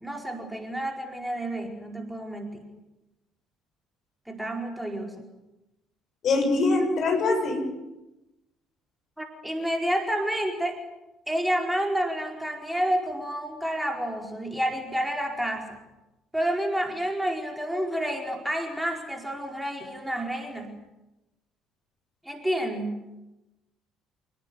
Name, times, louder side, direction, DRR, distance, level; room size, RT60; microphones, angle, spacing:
voice 1, 0.0-2.7 4.3-5.1 9.2-10.8 11.3-15.8 16.3-20.8 22.2-23.0, right 1 dB, 5° right, 2 dB, 4.7 m, -29 dB
voice 2, 6.2-7.6, left 3 dB, 45° left, 3 dB, 7.4 m, -23 dB
27.5 x 18.5 x 9.5 m, 0.99 s
figure-of-eight pair, 50°, 0 cm